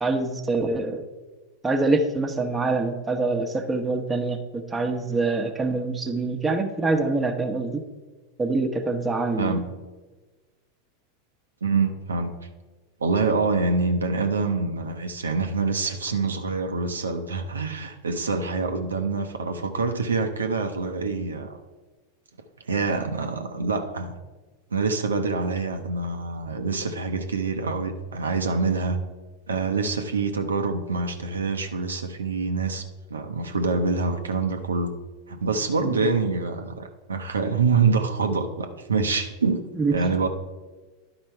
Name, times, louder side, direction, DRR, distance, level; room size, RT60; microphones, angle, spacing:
voice 1, 0.0-1.0 1.6-7.8 8.4-9.6 35.8-36.1 39.7-40.0, right 3 dB, 15° right, 4 dB, 0.9 m, -25 dB
voice 2, 9.4-9.7 11.6-12.3 13.0-21.6 22.7-24.2 24.7-29.0 29.5-32.8 33.1-34.9 35.3-39.6 39.9-40.3, right 4 dB, 85° right, 5 dB, 0.7 m, -26 dB
10.5 x 4.4 x 4.5 m, 1.3 s
hypercardioid pair, 90°, 0 cm